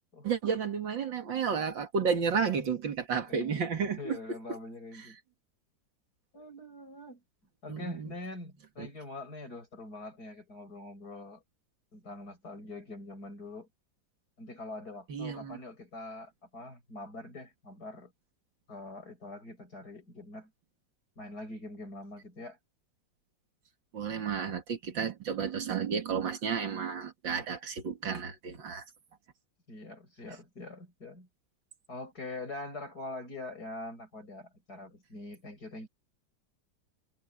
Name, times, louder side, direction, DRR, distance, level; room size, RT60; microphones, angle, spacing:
voice 1, 0.2-4.4 7.7-8.1 8.8-8.9 15.1-15.6 23.9-28.8, right 6 dB, 80° right, 2.7 m, -32 dB
voice 2, 3.3-3.6 4.0-5.2 6.3-7.2 7.6-11.4 11.9-13.7 14.4-18.1 18.7-20.5 21.2-22.6 29.7-31.3 31.9-35.9, left 2 dB, 55° left, 7.0 m, -44 dB
omnidirectional pair, 2.0 m